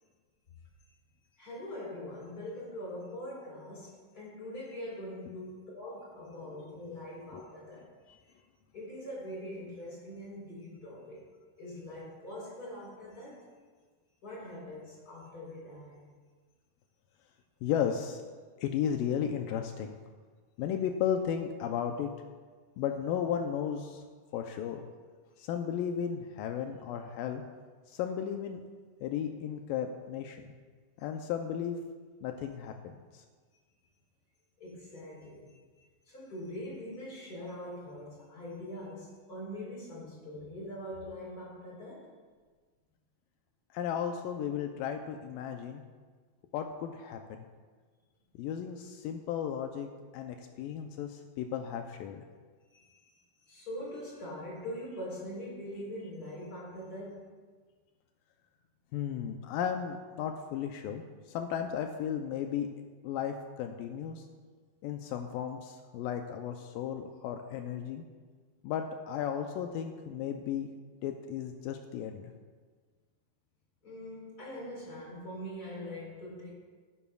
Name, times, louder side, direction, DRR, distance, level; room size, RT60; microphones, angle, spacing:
voice 1, 1.4-7.9 8.7-11.3 11.6-13.5 14.2-16.1 34.6-35.5 36.1-42.1 52.7-53.1 53.4-57.3 73.8-76.5, left 1 dB, 25° left, -5 dB, 4.1 m, -43 dB
voice 2, 17.6-18.2 18.6-20.0 20.6-22.1 22.8-24.0 24.3-24.9 25.4-27.4 27.9-28.6 29.0-30.4 31.0-31.8 32.2-33.2 43.7-45.8 46.5-47.5 48.4-49.9 50.1-52.3 58.9-62.7 63.0-64.2 64.8-68.0 68.6-70.7 71.0-72.3, left 8 dB, 85° left, 5 dB, 2.0 m, -34 dB
19.0 x 9.8 x 2.4 m, 1.5 s
omnidirectional pair, 4.5 m